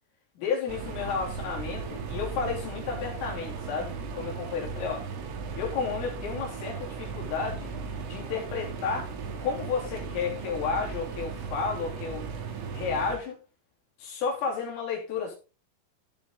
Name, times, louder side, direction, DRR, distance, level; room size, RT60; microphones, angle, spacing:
voice 1, 0.4-5.0 5.6-7.7 8.1-9.1 9.4-12.3 12.7-13.4 14.0-15.4, left 5 dB, 75° left, -2 dB, 5.8 m, -32 dB
sound 1, 0.7-13.2, right 5 dB, 75° right, 4.3 m, -37 dB
14.5 x 6.1 x 3.9 m, 0.32 s
omnidirectional pair, 6.0 m